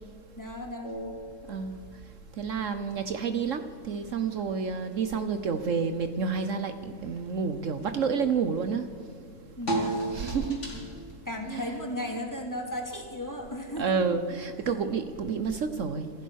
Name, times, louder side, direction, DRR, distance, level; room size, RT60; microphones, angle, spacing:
voice 1, 0.4-1.1 9.6-10.1 11.2-13.9, left 1 dB, 10° left, 1 dB, 3.0 m, -35 dB
sound 1, 0.8-14.4, right 2 dB, 55° left, 3.8 m, -40 dB
voice 2, 1.5-1.8 2.4-8.9 10.1-10.6 11.5-11.7 13.8-16.1, right 5 dB, 65° right, 9 dB, 1.2 m, -29 dB
26.5 x 15.5 x 6.4 m, 2.3 s
omnidirectional pair, 1.5 m